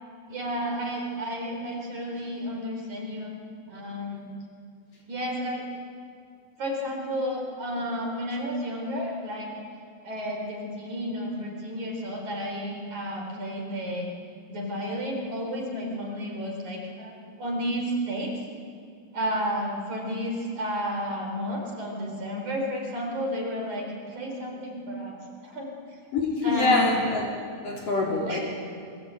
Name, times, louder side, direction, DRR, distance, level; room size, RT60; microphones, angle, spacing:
voice 1, 0.3-3.4 3.7-4.3 5.1-5.7 6.6-9.5 10.0-14.1 14.5-18.4 19.1-25.7 26.4-26.9 28.3-28.4, equal, 40° right, 0 dB, 5.0 m, -32 dB
voice 2, 26.1-27.3 27.6-28.4, left 3 dB, 45° left, -2 dB, 4.8 m, -24 dB
27.5 x 24.0 x 9.0 m, 2.4 s
omnidirectional pair, 5.6 m